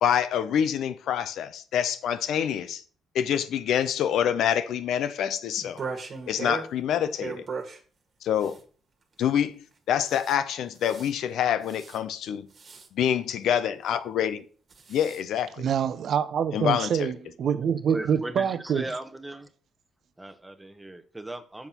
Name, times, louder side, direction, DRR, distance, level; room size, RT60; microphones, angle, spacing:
voice 1, 0.0-2.8 3.1-5.8 6.3-7.4 8.2-8.5 9.2-9.6 9.9-12.5 13.0-14.4 14.9-15.6 16.5-17.1, left 9 dB, 75° left, 0.7 m, -26 dB
sound 1, 5.6-6.7 7.2-7.8 8.4-8.6 10.1-10.4 10.8-11.1 11.7-12.0 12.6-12.9 14.7-15.2, right 5 dB, 45° right, 1.5 m, -37 dB
voice 2, 15.6-18.8, right 8 dB, 65° right, 0.6 m, -26 dB
voice 3, 17.9-19.5 20.2-21.7, right 1 dB, 10° right, 0.9 m, -37 dB
7.1 x 4.5 x 5.5 m
cardioid pair, 90°, 0 cm